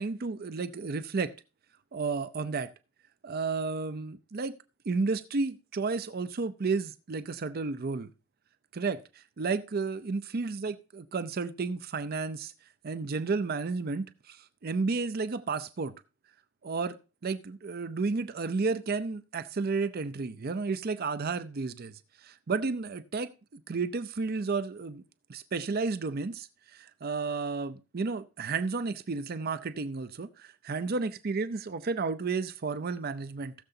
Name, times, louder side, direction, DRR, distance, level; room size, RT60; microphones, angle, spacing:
voice 1, 0.0-1.3 1.9-2.7 3.2-4.6 4.9-8.1 8.7-12.5 12.8-15.9 16.6-17.0 17.2-25.0 25.3-33.5, right 4 dB, 45° right, 0.5 m, -32 dB
18.5 x 6.8 x 2.7 m
head